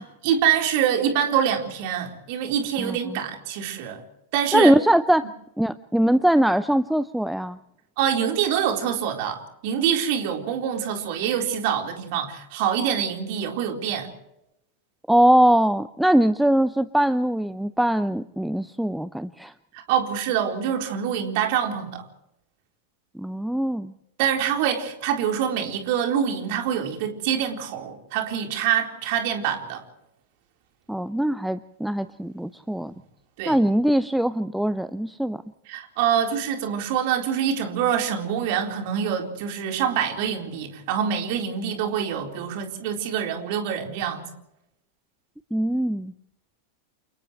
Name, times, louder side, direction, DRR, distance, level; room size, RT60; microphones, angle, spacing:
voice 1, 0.0-4.0 4.3-4.7 8.0-14.1 19.7-22.0 24.2-29.8 33.4-33.6 35.7-44.3, right 8 dB, 50° right, 3 dB, 4.0 m, -25 dB
voice 2, 2.8-3.2 4.5-5.3 5.6-7.6 15.1-19.5 23.1-23.9 30.9-32.9 33.5-35.4 45.5-46.1, right 1 dB, ahead, 14 dB, 0.6 m, -21 dB
29.0 x 28.5 x 3.2 m, 0.84 s
figure-of-eight pair, 90°, 0 cm